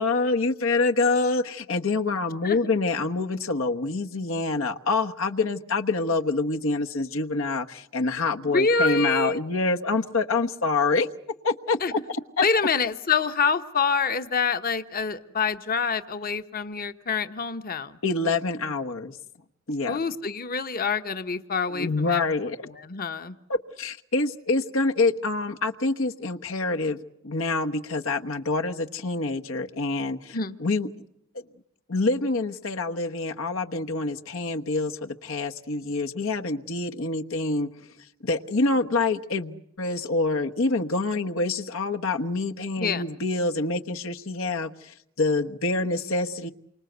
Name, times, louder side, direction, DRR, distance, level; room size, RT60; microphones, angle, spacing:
voice 1, 0.0-11.1 11.4-12.4 18.0-19.2 19.7-20.0 21.7-22.6 23.5-27.0 27.2-30.9 31.9-37.7 38.2-46.5, left 3 dB, 75° left, 5 dB, 1.2 m, -26 dB
voice 2, 8.5-9.4 11.8-11.9 12.4-17.9 19.9-22.2 22.7-23.3 30.3-30.6 42.8-43.0, left 5 dB, 45° left, 9 dB, 1.1 m, -26 dB
28.5 x 25.0 x 8.0 m, 0.81 s
head